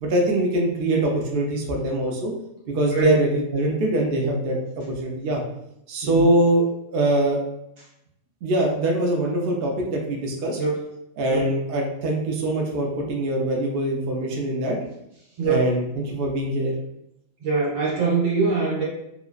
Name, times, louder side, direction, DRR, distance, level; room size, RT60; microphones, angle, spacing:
voice 1, 0.0-2.3 2.7-5.4 5.9-7.4 8.4-10.6 11.2-14.8 15.4-16.7, right 1 dB, 60° right, -1 dB, 0.7 m, -23 dB
voice 2, 15.4-15.7 17.4-18.8, right 4 dB, 80° right, -6 dB, 1.5 m, -22 dB
3.1 x 2.4 x 2.3 m, 0.82 s
omnidirectional pair, 1.4 m